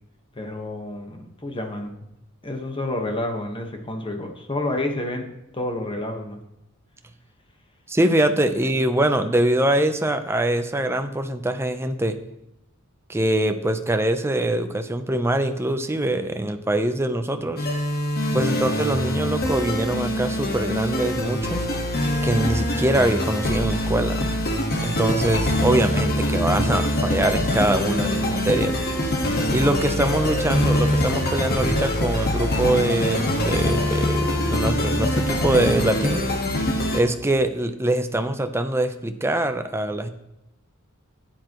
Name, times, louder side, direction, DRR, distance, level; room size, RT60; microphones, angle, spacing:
voice 1, 0.3-2.0 2.4-6.4, left 1 dB, 25° left, 4 dB, 1.4 m, -30 dB
voice 2, 7.9-12.2 13.1-17.7 18.3-21.6 22.2-24.2 24.8-28.8 29.0-29.2 29.5-36.2 36.9-40.1, right 1 dB, 10° right, 8 dB, 0.7 m, -23 dB
sound 1, 17.6-37.0, left 1 dB, 45° left, 1.6 m, -24 dB
12.0 x 9.1 x 3.1 m, 0.88 s
head